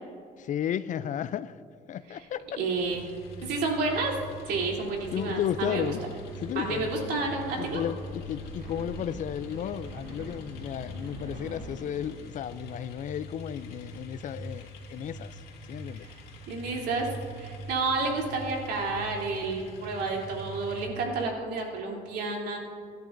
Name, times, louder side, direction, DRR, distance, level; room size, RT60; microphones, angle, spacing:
voice 1, 0.4-1.6 1.9-2.6 5.1-6.0 6.4-6.9 7.6-15.4 15.7-16.1, left 10 dB, 50° left, 0.4 m, -33 dB
sound 1, 2.1-12.1, right 2 dB, 90° right, 3.1 m, -46 dB
voice 2, 2.6-3.0 3.4-4.1 4.5-5.9 6.5-7.8 16.0-16.2 16.5-17.1 17.3-22.6, right 3 dB, 75° right, 3.2 m, -30 dB
sound 2, 2.8-20.9, left 1 dB, 70° left, 2.3 m, -43 dB
24.5 x 11.5 x 2.6 m
cardioid pair, 110°, 17 cm